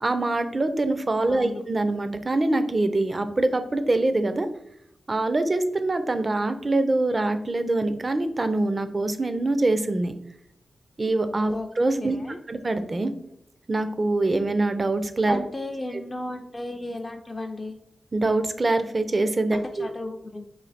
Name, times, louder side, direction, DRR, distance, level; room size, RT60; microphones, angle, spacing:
voice 1, 0.0-4.5 5.1-10.1 11.0-12.2 12.5-13.1 13.7-15.4 18.1-19.9, right 2 dB, 40° right, 10 dB, 0.4 m, -24 dB
voice 2, 1.3-1.6 11.5-11.7 12.0-12.4 15.3-17.8 19.5-20.4, left 2 dB, 30° left, 3 dB, 0.4 m, -34 dB
3.2 x 2.3 x 4.0 m, 0.73 s
cardioid pair, 60°, 0 cm